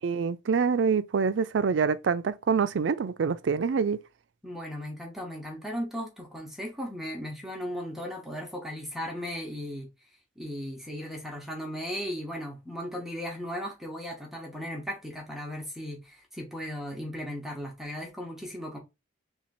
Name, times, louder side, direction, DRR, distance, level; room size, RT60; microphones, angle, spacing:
voice 1, 0.0-4.0, right 5 dB, 75° right, 0.4 m, -26 dB
voice 2, 4.4-9.9 10.4-18.8, equal, ahead, 1.0 m, -36 dB
3.6 x 2.8 x 4.1 m
head